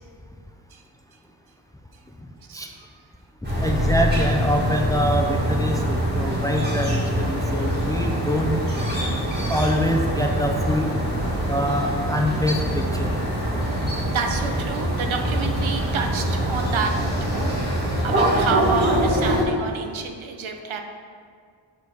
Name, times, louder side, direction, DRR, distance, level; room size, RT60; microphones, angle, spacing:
voice 1, 2.5-2.9 13.7-13.8 14.1-16.9 17.2-20.8, right 5 dB, 85° right, 4 dB, 0.8 m, -29 dB
sound 1, 3.4-19.4, equal, 20° right, 1.8 m, -24 dB
voice 2, 3.6-8.5 9.5-10.9 11.5-13.2, equal, 10° left, 2 dB, 0.4 m, -25 dB
7.3 x 3.4 x 6.2 m, 2.1 s
wide cardioid pair, 150°, 46 cm